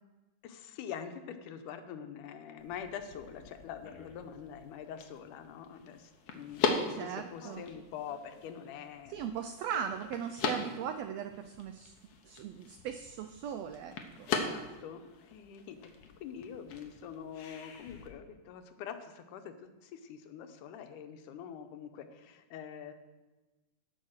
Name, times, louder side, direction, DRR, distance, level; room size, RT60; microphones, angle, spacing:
voice 1, 0.4-9.3 9.7-9.8 14.3-15.9 16.2-22.9, left 8 dB, 85° left, 7 dB, 2.4 m, -45 dB
sound 1, 2.6-18.1, left 5 dB, 65° left, 1.9 m, -40 dB
voice 2, 6.6-7.6 9.1-11.9 12.3-14.3, right 8 dB, 85° right, 9 dB, 1.5 m, -39 dB
13.0 x 5.6 x 6.4 m, 1.2 s
omnidirectional pair, 3.5 m